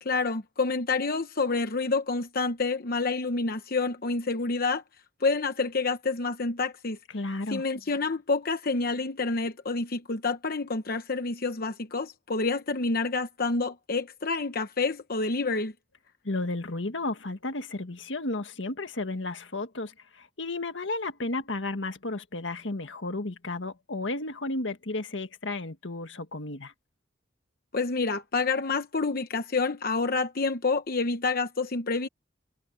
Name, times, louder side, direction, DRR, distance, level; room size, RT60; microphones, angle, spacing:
voice 1, 0.0-4.8 5.2-7.0 7.5-15.7 27.7-32.1, left 3 dB, 50° left, 0.9 m, -28 dB
voice 2, 7.1-7.6 16.2-26.7, left 2 dB, 75° left, 1.7 m, -33 dB
head